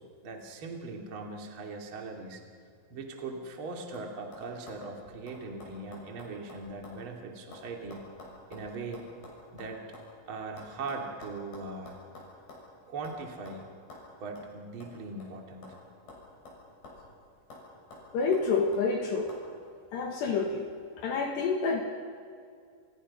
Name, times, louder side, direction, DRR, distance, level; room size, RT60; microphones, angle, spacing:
voice 1, 0.2-2.4 2.9-8.0 8.5-9.0 9.5-9.9 10.3-12.0 12.9-13.7 14.2-15.8, right 3 dB, 35° right, 1 dB, 2.6 m, -40 dB
sound 1, 3.2-3.6 3.9-4.1 4.3-7.0 7.3-10.1 10.6-12.7 13.0-13.2 13.5-13.6 13.9-14.0 14.4-14.5 14.8-15.8 16.1-17.1 17.5-17.6 17.9-18.9 19.3-19.4, left 2 dB, 45° left, 8.5 m, -49 dB
voice 2, 18.1-19.3 19.9-20.7 21.0-21.8, left 4 dB, 65° left, 3 dB, 3.4 m, -28 dB
29.5 x 29.0 x 5.6 m, 2.3 s
omnidirectional pair, 5.7 m